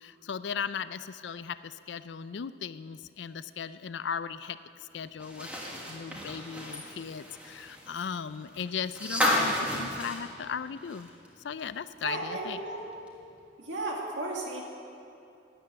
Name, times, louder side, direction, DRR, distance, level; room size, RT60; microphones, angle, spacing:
voice 1, 0.0-4.6 4.9-11.1 11.4-12.6, left 7 dB, 65° left, 14 dB, 0.4 m, -36 dB
sound 1, 5.2-11.3 11.6-11.7 13.1-13.2, equal, 5° right, 1.5 m, -33 dB
voice 2, 12.0-12.8 13.6-14.6, right 2 dB, 75° right, -1 dB, 2.1 m, -34 dB
12.5 x 9.1 x 7.5 m, 2.6 s
head